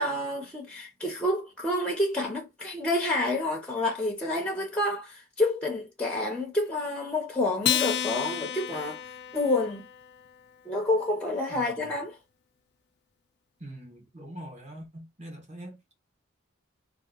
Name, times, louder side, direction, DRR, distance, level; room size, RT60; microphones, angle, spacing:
voice 1, 0.0-9.0 9.3-9.9 10.7-12.1, left 2 dB, 5° left, 0.6 m, -28 dB
Acoustic guitar, 7.6-10.3, left 10 dB, 50° left, 0.4 m, -31 dB
voice 2, 11.5-12.0 13.6-16.0, right 1 dB, 30° right, 1.2 m, -44 dB
2.8 x 2.4 x 3.7 m
head